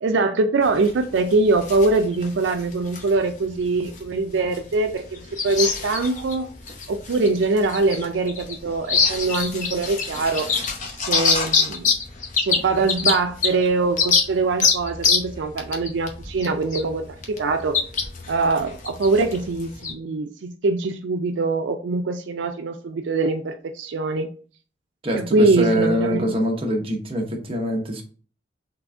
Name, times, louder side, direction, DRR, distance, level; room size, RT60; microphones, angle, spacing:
voice 1, 0.0-6.5 6.9-10.5 11.1-11.9 12.4-17.8 18.3-24.3 25.1-26.4, right 3 dB, 75° right, 0.4 m, -23 dB
sound 1, 0.6-19.9, left 5 dB, 40° left, 0.7 m, -26 dB
voice 2, 25.0-28.0, equal, 30° right, 0.9 m, -24 dB
3.9 x 3.3 x 3.5 m
head